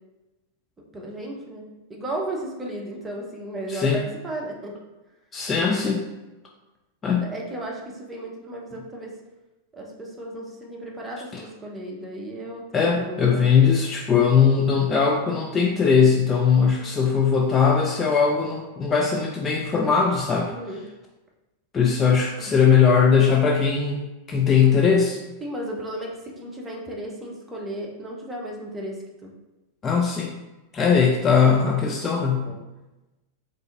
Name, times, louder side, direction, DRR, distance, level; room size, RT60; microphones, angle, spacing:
voice 1, 0.9-4.7 7.2-9.1 9.7-13.5 16.6-16.9 19.9-20.0 20.5-20.8 22.4-22.6 25.4-29.3 32.4-32.6, right 1 dB, 15° right, -2 dB, 0.7 m, -35 dB
voice 2, 3.7-4.0 5.3-6.0 7.0-7.3 11.3-11.4 12.7-20.5 21.7-24.0 24.3-25.2 29.8-30.3 30.7-32.5, left 6 dB, 20° left, 0 dB, 0.3 m, -20 dB
3.6 x 2.5 x 2.5 m, 1.1 s
figure-of-eight pair, 90°, 0 cm